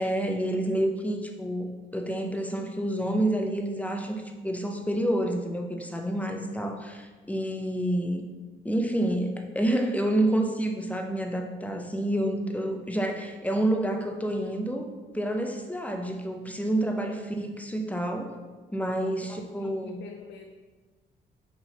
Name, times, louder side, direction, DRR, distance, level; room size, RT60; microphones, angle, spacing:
voice 1, 0.0-8.3 8.6-14.9 15.1-18.3 18.7-20.0, right 1 dB, 5° left, 4 dB, 0.7 m, -28 dB
voice 2, 6.1-6.6 19.0-20.4, left 6 dB, 65° left, 2 dB, 0.6 m, -47 dB
6.1 x 4.4 x 3.9 m, 1.3 s
cardioid pair, 90°, 20 cm